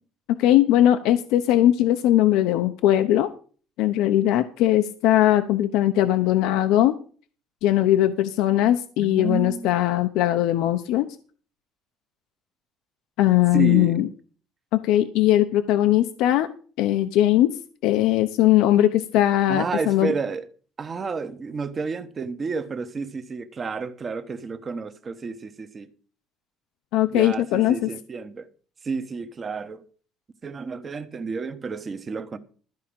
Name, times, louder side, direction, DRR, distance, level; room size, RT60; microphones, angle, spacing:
voice 1, 0.4-3.3 3.8-7.0 7.6-11.1 13.2-14.1 14.7-16.5 16.8-17.5 17.8-20.1 26.9-27.9, left 13 dB, 70° left, 0.8 m, -20 dB
voice 2, 9.0-9.7 13.5-14.0 19.5-20.4 20.8-25.9 27.1-28.5 28.8-29.8 30.4-32.4, right 4 dB, 25° right, 1.0 m, -30 dB
13.5 x 4.9 x 8.6 m
cardioid pair, 160°, 0 cm